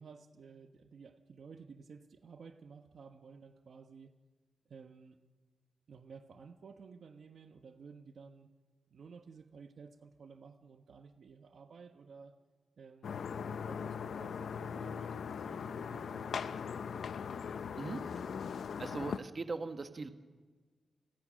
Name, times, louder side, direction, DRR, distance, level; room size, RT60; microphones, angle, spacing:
voice 1, 0.0-4.2 4.7-5.2 5.9-8.5 8.9-12.4 12.8-17.5, right 5 dB, 60° right, 7 dB, 1.3 m, -54 dB
sound 1, 13.0-19.2, left 6 dB, 75° left, 0.8 m, -40 dB
voice 2, 18.8-20.1, right 3 dB, 35° right, 8 dB, 1.5 m, -39 dB
30.0 x 21.5 x 6.5 m, 1.4 s
wide cardioid pair, 135°, 0 cm